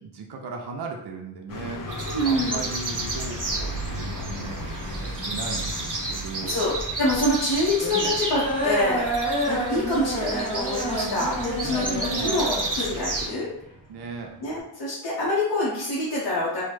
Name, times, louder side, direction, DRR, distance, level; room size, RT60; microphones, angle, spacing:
voice 1, 0.0-6.6 11.6-12.4 13.9-14.4, right 4 dB, 65° right, 2 dB, 0.5 m, -37 dB
sound 1, 1.5-6.6, left 1 dB, 55° left, 0.5 m, -35 dB
sound 2, 1.9-13.3, right 2 dB, 45° right, 0.9 m, -31 dB
voice 2, 2.1-2.7 6.4-9.1 9.5-13.5 14.4-16.6, left 1 dB, 80° left, -8 dB, 0.8 m, -26 dB
sound 3, 4.6-14.6, right 1 dB, 10° left, 0.7 m, -30 dB
3.1 x 2.0 x 3.1 m, 0.79 s
cardioid pair, 45°, 42 cm